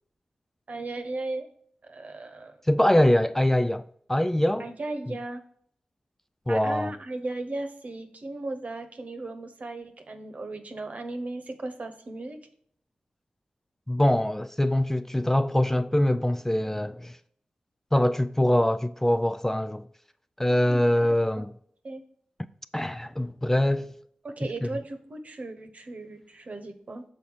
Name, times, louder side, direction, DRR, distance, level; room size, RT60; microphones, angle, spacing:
voice 1, 0.7-1.5 1.8-2.6 4.6-5.4 6.5-12.4 20.7-21.4 21.8-22.0 24.2-27.0, right 2 dB, 55° right, 1.0 m, -36 dB
voice 2, 2.7-4.7 5.1-5.2 6.5-6.9 13.9-17.2 17.9-19.9 20.4-21.5 22.7-23.9 24.6-24.7, left 1 dB, 10° left, 0.3 m, -23 dB
6.3 x 4.0 x 5.7 m
cardioid pair, 40°, 3 cm